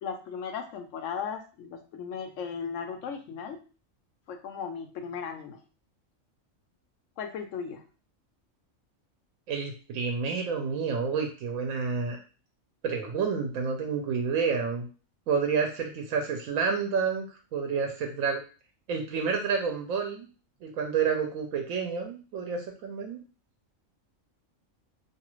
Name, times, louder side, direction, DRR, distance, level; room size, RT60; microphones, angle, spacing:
voice 1, 0.0-3.6 4.3-5.6 7.2-7.8, left 6 dB, 75° left, 5 dB, 0.9 m, -36 dB
voice 2, 9.5-12.2 12.8-14.9 15.3-18.4 18.9-20.3 20.6-23.2, right 5 dB, 80° right, 2 dB, 1.0 m, -29 dB
2.7 x 2.4 x 3.0 m, 0.36 s
omnidirectional pair, 1.4 m